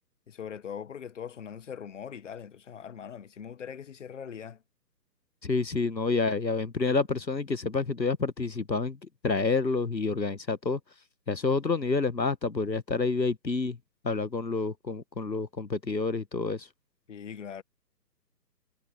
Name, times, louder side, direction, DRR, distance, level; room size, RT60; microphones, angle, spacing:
voice 1, 0.3-4.6 17.1-17.6, left 8 dB, 45° left, 1.6 m, -41 dB
voice 2, 5.4-10.8 11.3-13.8 14.0-16.7, left 4 dB, 90° left, 1.3 m, -28 dB
figure-of-eight pair, 135°, 50 cm